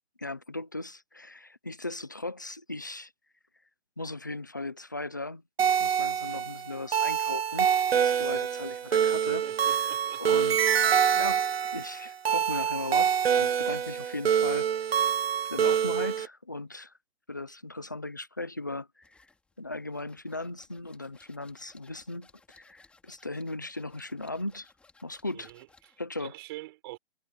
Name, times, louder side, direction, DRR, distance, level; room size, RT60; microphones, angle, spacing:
voice 1, 0.2-3.1 4.0-9.9 10.2-10.8 11.1-15.1 15.5-16.9 17.3-19.3 19.6-24.7 25.0-25.5 26.0-26.3, left 2 dB, 20° left, 0.4 m, -38 dB
sound 1, 5.6-16.3, right 8 dB, 80° right, 0.8 m, -26 dB
voice 2, 9.2-10.7 25.3-25.9 26.2-27.0, right 19 dB, 25° right, 5.0 m, -45 dB
sound 2, 19.0-26.0, left 3 dB, 5° left, 4.3 m, -62 dB
hypercardioid pair, 170°, 30 cm